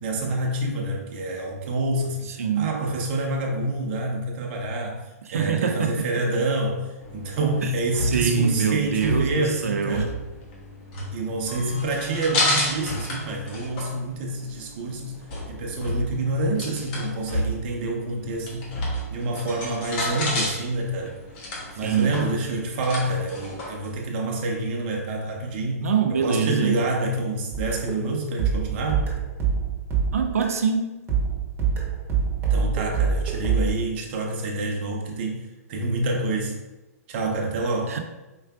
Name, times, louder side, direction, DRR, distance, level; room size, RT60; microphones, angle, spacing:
voice 1, 0.0-5.0 5.3-10.1 11.1-15.2 15.5-18.7 19.1-21.2 21.8-29.1 32.5-35.4 35.7-36.6 37.1-38.0, right 2 dB, 40° right, 1 dB, 0.8 m, -27 dB
voice 2, 2.3-2.7 5.3-6.1 7.6-7.7 8.0-10.1 21.8-22.2 25.8-26.7 30.1-31.0 37.9-38.0, right 6 dB, 65° right, 5 dB, 0.5 m, -24 dB
sound 1, 7.0-24.0, left 1 dB, 40° left, 1.2 m, -32 dB
sound 2, 27.5-30.7 31.1-33.7, right 6 dB, 25° right, 1.0 m, -25 dB
4.8 x 3.2 x 2.3 m, 1.1 s
figure-of-eight pair, 115°, 8 cm